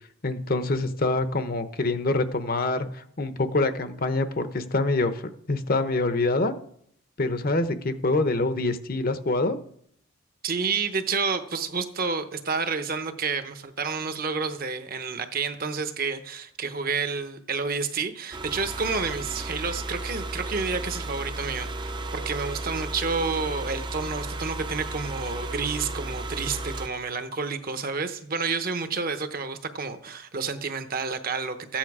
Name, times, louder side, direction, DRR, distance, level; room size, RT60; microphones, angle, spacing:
voice 1, 0.2-5.2 5.5-6.5 7.2-9.6, left 2 dB, 45° left, 10 dB, 0.8 m, -25 dB
voice 2, 10.4-31.8, right 4 dB, 40° right, 9 dB, 0.9 m, -30 dB
sound 1, 18.3-26.9, right 2 dB, 20° right, 0.6 m, -34 dB
14.0 x 9.1 x 4.8 m, 0.67 s
head